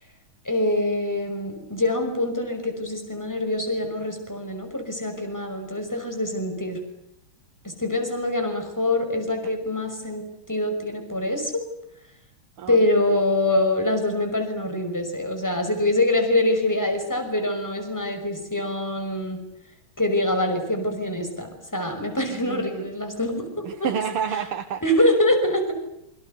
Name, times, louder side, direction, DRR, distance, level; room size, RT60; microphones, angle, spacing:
voice 1, 0.4-6.8 7.6-11.6 12.7-19.4 20.0-23.9 24.8-25.7, left 1 dB, 5° left, 5 dB, 6.0 m, -24 dB
voice 2, 22.3-22.9 23.7-24.8, right 7 dB, 85° right, 5 dB, 2.3 m, -29 dB
28.0 x 25.0 x 8.1 m, 0.79 s
omnidirectional pair, 2.4 m